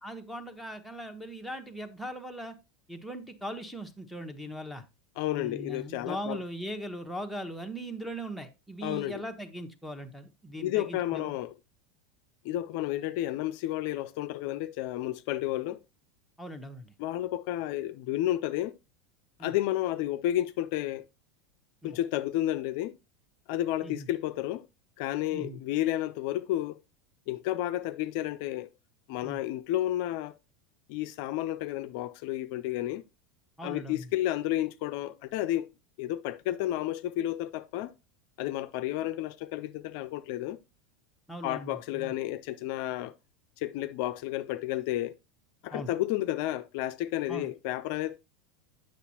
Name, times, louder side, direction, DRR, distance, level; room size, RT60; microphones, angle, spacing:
voice 1, 0.0-2.5 2.9-4.8 5.3-11.3 16.4-16.9 19.4-19.5 21.8-22.0 23.8-24.1 25.3-25.6 29.2-29.4 33.6-34.1 41.3-42.1 45.7-45.9 47.3-47.5, equal, ahead, 1.0 m, -39 dB
voice 2, 5.2-6.4 8.8-9.2 10.6-11.6 12.4-15.8 17.0-18.8 19.4-21.0 21.8-22.9 23.5-24.7 25.0-26.8 27.3-28.7 29.1-30.4 30.9-33.0 33.6-35.7 36.0-37.9 38.4-40.6 41.4-43.1 43.6-45.2 45.6-48.2, left 14 dB, 65° left, 0.4 m, -31 dB
8.1 x 6.2 x 2.9 m
hypercardioid pair, 95°, 0 cm